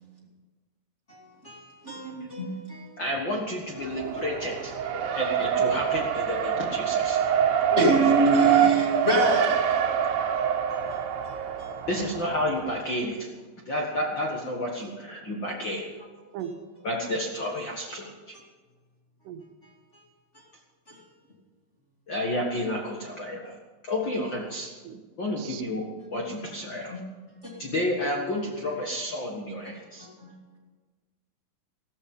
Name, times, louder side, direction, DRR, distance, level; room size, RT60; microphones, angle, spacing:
voice 1, 1.1-3.0 4.9-5.2 7.8-9.6 10.3-11.8 16.4-16.6 19.6-20.0 20.3-20.5 20.9-21.1 26.2-26.3 26.7-27.0 27.3-27.7 29.6-30.6, right 2 dB, 20° left, 2.2 m, -28 dB
voice 2, 1.8-2.3 7.7-7.9 8.6-8.7 16.3-16.5 19.3-19.4 24.8-25.0 25.4-25.6, right 9 dB, 85° right, 3.1 m, -35 dB
voice 3, 3.0-4.7 5.1-7.2 11.9-13.3 13.6-15.9 16.8-18.1 22.1-23.5 23.8-24.7 25.2-25.8 26.1-26.9 27.6-30.1, left 1 dB, 70° left, 1.1 m, -30 dB
Race car auto racing, 3.7-12.8, right 8 dB, 70° right, 2.6 m, -26 dB
15.0 x 14.5 x 5.4 m
omnidirectional pair, 4.8 m